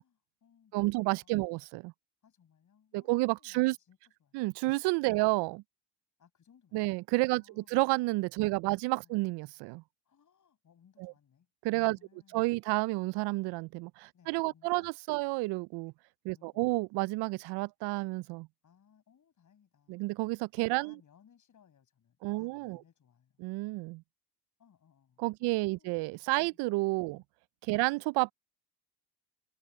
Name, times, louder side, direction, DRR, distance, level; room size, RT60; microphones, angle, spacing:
voice 1, 0.0-1.5 2.2-4.4 5.0-5.2 6.2-6.9 7.2-7.7 8.4-9.1 10.0-12.6 14.1-15.2 16.3-16.7 18.6-20.1 20.7-23.4 24.6-25.9 26.4-26.6 27.1-27.2 27.7-27.9, left 8 dB, 40° left, 6.7 m, -65 dB
voice 2, 0.7-1.9 2.9-3.8 4.3-5.6 6.7-9.8 11.0-11.1 11.6-12.0 12.3-15.9 16.2-18.5 19.9-20.9 22.2-22.8 23.4-24.0 25.2-27.2 27.6-28.3, right 23 dB, 60° right, 0.7 m, -30 dB
hypercardioid pair, 70°, 45 cm